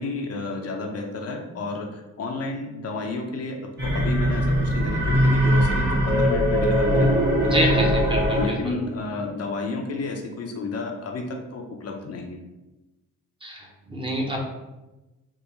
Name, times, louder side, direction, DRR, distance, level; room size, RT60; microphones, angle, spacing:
voice 1, 0.0-7.8 8.4-12.4, left 3 dB, 50° left, 2 dB, 0.6 m, -31 dB
sound 1, 3.8-8.7, equal, 35° right, 1.2 m, -21 dB
voice 2, 7.5-8.7 13.4-14.4, equal, 15° right, -1 dB, 0.7 m, -27 dB
3.5 x 2.4 x 3.0 m, 1.0 s
cardioid pair, 85°, 32 cm